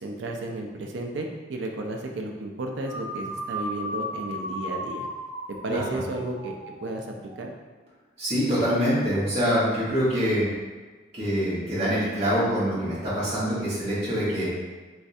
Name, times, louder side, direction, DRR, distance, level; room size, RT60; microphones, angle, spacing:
voice 1, 0.0-5.1 5.5-7.5, right 2 dB, 80° right, 2 dB, 0.5 m, -33 dB
sound 1, 2.8-7.4, equal, 60° left, 1.5 m, -35 dB
voice 2, 5.7-6.0 8.2-10.5 11.1-14.5, equal, 35° right, -10 dB, 1.2 m, -25 dB
3.4 x 3.1 x 2.7 m, 1.3 s
head